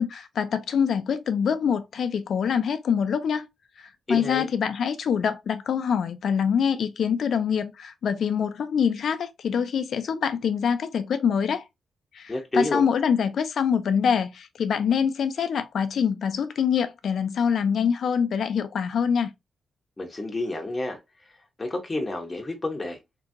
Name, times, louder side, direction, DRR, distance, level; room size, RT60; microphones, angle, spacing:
voice 1, 0.0-3.5 3.8-11.7 12.1-19.3, left 7 dB, 70° left, 0.3 m, -25 dB
voice 2, 4.1-4.5 12.3-12.8 20.0-21.0 21.6-23.0, left 2 dB, 20° left, 0.6 m, -29 dB
2.8 x 2.6 x 2.4 m
wide cardioid pair, 120°, 0 cm